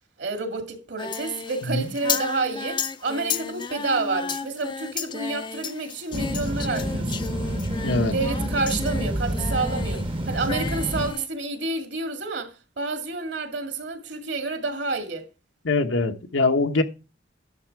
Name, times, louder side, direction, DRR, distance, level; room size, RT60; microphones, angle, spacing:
voice 1, 0.2-7.3 8.1-15.2, right 3 dB, 65° right, 2.1 m, -29 dB
Singing, 1.0-10.1 10.4-11.3, left 6 dB, 25° left, 0.5 m, -33 dB
sound 1, 6.1-11.1, right 1 dB, 30° right, 0.8 m, -28 dB
voice 2, 7.8-8.1 15.6-16.8, left 3 dB, 85° left, 1.1 m, -23 dB
11.0 x 6.7 x 4.7 m
head